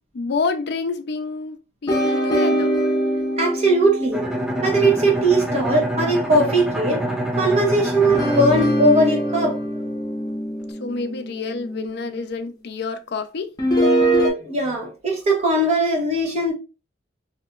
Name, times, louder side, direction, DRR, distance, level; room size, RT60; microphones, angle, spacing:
voice 1, 0.1-1.6 1.8-2.7 10.8-13.5, left 4 dB, 60° left, 0.5 m, -28 dB
sound 1, 1.9-6.4 8.1-12.3 13.6-14.3, equal, 20° left, 0.7 m, -23 dB
voice 2, 3.4-4.2 4.6-7.0 7.4-9.8 14.3-16.5, right 1 dB, 35° right, 1.0 m, -20 dB
Bowed string instrument, 4.1-9.8, right 1 dB, 5° right, 0.3 m, -26 dB
2.9 x 2.8 x 2.3 m
head